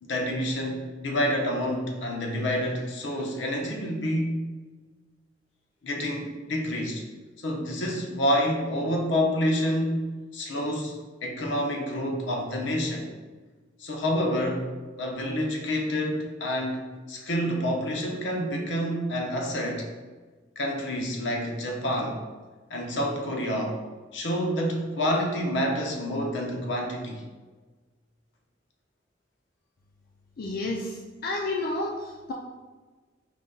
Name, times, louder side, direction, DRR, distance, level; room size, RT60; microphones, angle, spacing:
voice 1, 0.0-4.5 5.8-7.0 7.4-10.9 11.2-13.1 13.8-16.8 17.1-19.9 20.6-22.2 22.7-23.8 24.1-27.2, equal, 85° left, 1 dB, 0.8 m, -28 dB
voice 2, 30.4-31.0 31.2-32.3, left 2 dB, 55° left, -1 dB, 0.4 m, -30 dB
5.0 x 2.2 x 3.8 m, 1.3 s
head